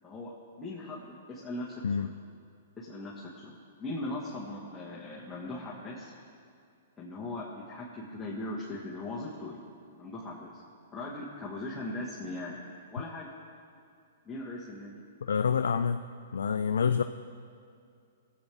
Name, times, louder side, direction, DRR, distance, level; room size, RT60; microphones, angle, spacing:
voice 1, 0.0-2.1 2.8-6.1 7.0-9.6 10.0-10.6 10.9-12.6 12.9-13.3 14.2-15.0, left 2 dB, 10° left, -7 dB, 1.5 m, -39 dB
voice 2, 15.2-16.0 16.3-17.0, left 6 dB, 85° left, 9 dB, 0.3 m, -27 dB
19.0 x 8.3 x 3.5 m, 2.4 s
hypercardioid pair, 135°, 0 cm